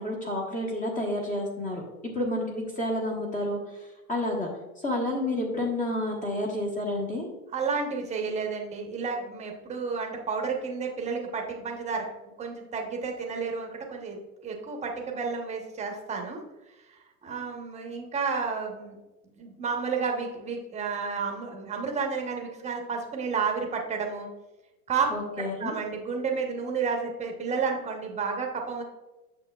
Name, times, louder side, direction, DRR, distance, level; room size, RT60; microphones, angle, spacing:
voice 1, 0.0-1.8 2.1-4.5 4.8-7.3 25.1-25.8, left 1 dB, 20° left, -1 dB, 1.2 m, -30 dB
voice 2, 7.5-12.1 12.4-14.2 14.4-16.4 17.2-19.0 19.4-24.3 24.9-25.1 25.6-28.8, right 5 dB, 15° right, 1 dB, 1.0 m, -31 dB
8.4 x 6.3 x 2.3 m, 1.1 s
hypercardioid pair, 125°, 44 cm